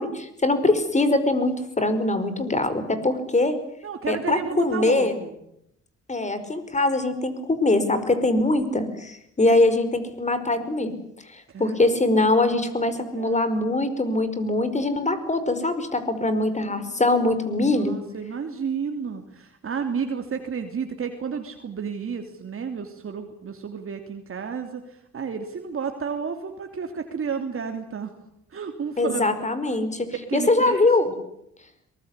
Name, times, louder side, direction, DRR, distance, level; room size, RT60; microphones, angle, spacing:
voice 1, 0.0-3.6 4.1-5.1 6.1-10.9 11.3-18.0 29.0-31.1, left 2 dB, 25° left, 11 dB, 5.0 m, -22 dB
voice 2, 3.8-5.3 11.5-11.8 13.1-13.4 17.7-28.1 28.5-29.5 30.3-30.8, right 6 dB, 45° right, 5 dB, 3.1 m, -31 dB
23.0 x 21.5 x 9.8 m, 0.77 s
cardioid pair, 90°, 29 cm